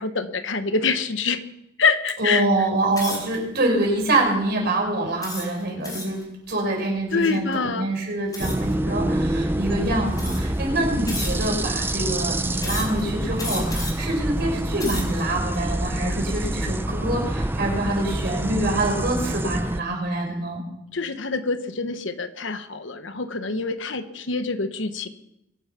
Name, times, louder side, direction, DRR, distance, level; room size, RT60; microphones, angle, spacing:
voice 1, 0.0-1.4 1.8-2.4 7.1-7.9 20.9-25.1, left 4 dB, 70° left, 10 dB, 1.1 m, -25 dB
voice 2, 2.2-6.2 6.5-20.6, right 2 dB, 60° right, 0 dB, 5.7 m, -25 dB
sound 1, 2.9-3.4 4.0-4.3 5.2-6.2 8.3-8.7 9.6-9.7 10.1-10.6 11.1-11.7 12.6-13.0 13.4-14.1 14.6-15.2, left 2 dB, 20° left, 5.1 m, -33 dB
sound 2, 8.4-19.8, right 1 dB, 10° right, 0.6 m, -26 dB
23.5 x 8.7 x 5.8 m, 0.86 s
head